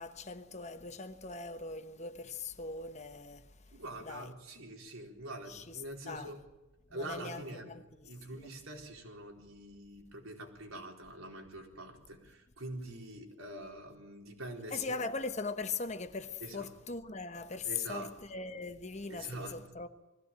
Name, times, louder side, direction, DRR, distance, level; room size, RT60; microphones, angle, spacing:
voice 1, 0.0-4.3 5.5-5.8 6.1-6.3 6.9-8.5 14.7-19.9, left 4 dB, 35° left, 1.1 m, -40 dB
voice 2, 3.7-6.4 6.9-7.8 8.0-15.0 16.4-16.7 17.6-18.1 19.1-19.6, right 1 dB, 80° right, 4.2 m, -45 dB
21.0 x 16.5 x 8.9 m
head